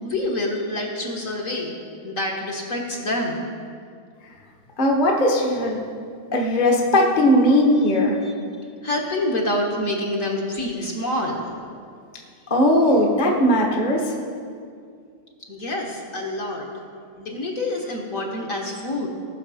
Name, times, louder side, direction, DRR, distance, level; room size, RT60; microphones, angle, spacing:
voice 1, 0.0-1.8 2.0-3.4 8.2-8.3 8.8-11.4 15.5-16.7 17.2-19.1, left 1 dB, 45° left, -1 dB, 1.5 m, -27 dB
voice 2, 4.8-5.8 6.3-8.2 12.5-14.1, left 1 dB, 30° left, -1 dB, 1.1 m, -18 dB
18.0 x 6.4 x 4.9 m, 2.2 s
omnidirectional pair, 2.3 m